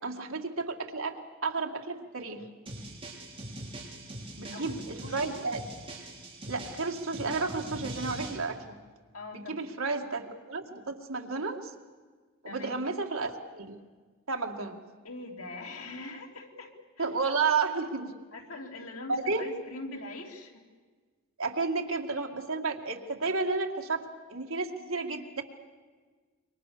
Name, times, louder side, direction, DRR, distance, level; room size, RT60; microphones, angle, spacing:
voice 1, 0.0-2.5 4.3-5.6 6.5-8.8 9.3-11.7 12.4-13.7 14.3-14.8 17.0-18.1 19.1-19.5 21.4-25.4, right 4 dB, 70° right, 3 dB, 2.2 m, -32 dB
sound 1, 2.7-8.4, right 1 dB, 25° right, 5.0 m, -42 dB
voice 2, 4.4-4.7 5.0-5.3 9.1-9.7 12.5-12.8 15.0-17.1 18.3-20.6, left 2 dB, 80° left, 1 dB, 3.5 m, -43 dB
27.0 x 24.5 x 6.8 m, 1.5 s
head